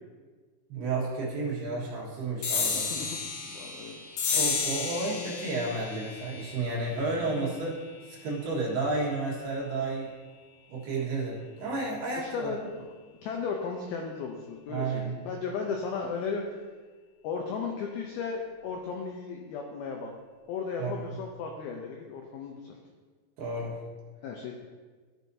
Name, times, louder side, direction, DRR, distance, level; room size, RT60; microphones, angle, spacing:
voice 1, 0.7-2.9 4.3-7.8 8.1-10.1 10.7-12.5 14.7-15.2 20.8-21.1 23.4-23.8, right 3 dB, 65° right, -4 dB, 3.4 m, -32 dB
sound 1, 2.4-9.3, left 5 dB, 70° left, 2.1 m, -33 dB
voice 2, 2.7-4.0 12.2-12.9 13.2-16.4 17.2-20.1 20.5-22.8 24.2-24.5, left 5 dB, 85° left, 1 dB, 2.2 m, -35 dB
14.5 x 6.3 x 2.7 m, 1.4 s
omnidirectional pair, 5.3 m